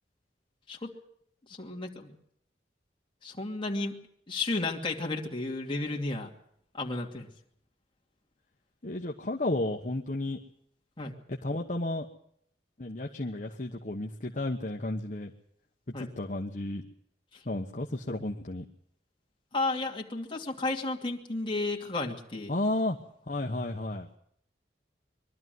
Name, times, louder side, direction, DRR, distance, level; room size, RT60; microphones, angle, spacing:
voice 1, 1.5-2.1 3.2-4.0 4.3-6.3 6.7-7.3 11.0-11.1 15.9-16.1 17.3-17.4 19.5-22.5, left 2 dB, 30° left, 1 dB, 2.6 m, -33 dB
voice 2, 8.8-10.4 11.3-12.1 12.8-15.3 16.0-16.8 17.5-18.7 22.5-23.0 23.3-24.1, left 2 dB, 45° left, 1 dB, 1.1 m, -32 dB
23.0 x 12.5 x 9.4 m, 0.71 s
head